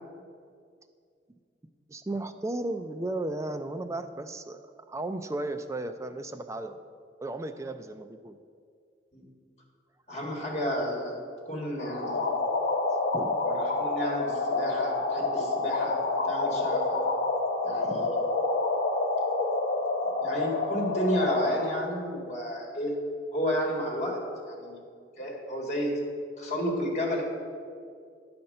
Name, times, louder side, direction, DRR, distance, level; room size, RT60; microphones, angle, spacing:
voice 1, 1.9-4.6 4.9-6.8 7.2-8.4 13.1-13.4 17.8-18.1, right 2 dB, 15° right, 8 dB, 0.3 m, -35 dB
voice 2, 10.1-11.2 11.5-12.3 13.5-16.0 16.2-17.0 17.6-18.1 20.2-23.0 23.3-24.8 25.2-26.0 26.4-27.2, equal, 40° left, -2 dB, 1.8 m, -31 dB
sound 1, 11.8-21.8, left 3 dB, 65° left, 0.9 m, -28 dB
9.5 x 4.3 x 6.6 m, 2.2 s
head